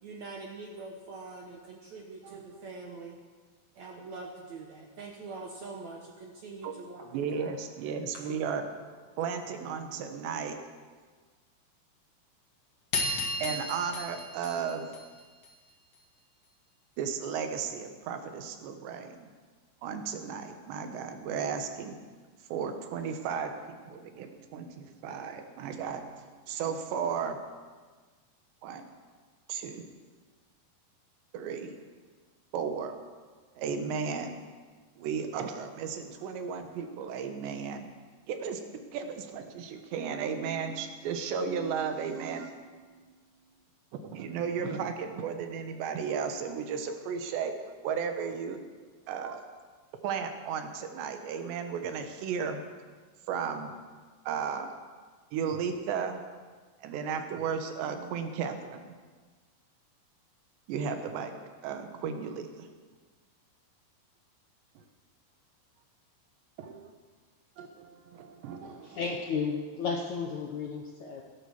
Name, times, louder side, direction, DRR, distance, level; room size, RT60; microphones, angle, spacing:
voice 1, 0.0-3.2 3.7-7.5 8.2-8.3, right 3 dB, 70° right, 1 dB, 1.7 m, -44 dB
voice 2, 2.2-2.6 6.6-8.7 9.2-10.6 13.4-14.9 17.0-19.3 19.8-22.0 22.5-27.4 28.6-28.9 29.5-29.9 31.3-31.8 32.5-33.0 33.6-34.4 35.0-37.9 38.3-38.6 38.9-43.0 43.9-47.5 47.8-48.6 49.1-49.4 50.0-52.6 53.3-53.7 54.2-54.7 55.3-56.2 56.8-59.0 60.7-62.7 64.8-64.9 66.6-66.9 67.6-69.0, right 6 dB, 90° right, 6 dB, 3.5 m, -34 dB
sound 1, 12.9-15.5, left 2 dB, 45° left, 2.6 m, -33 dB
voice 3, 68.6-71.2, left 5 dB, 75° left, 1 dB, 1.8 m, -33 dB
16.0 x 11.0 x 7.2 m, 1.5 s
omnidirectional pair, 4.9 m